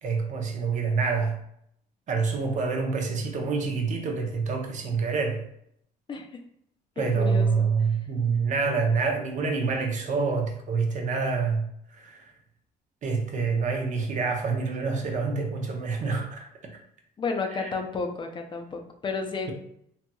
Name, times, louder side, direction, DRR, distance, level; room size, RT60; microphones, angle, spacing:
voice 1, 0.0-1.4 2.1-5.4 7.0-11.7 12.0-12.3 13.0-16.8 17.6-17.7, right 4 dB, 45° right, 0.6 m, -27 dB
voice 2, 7.0-8.0 17.2-19.5, left 4 dB, 30° left, 0.5 m, -32 dB
2.8 x 2.7 x 2.2 m
cardioid pair, 110°, 17 cm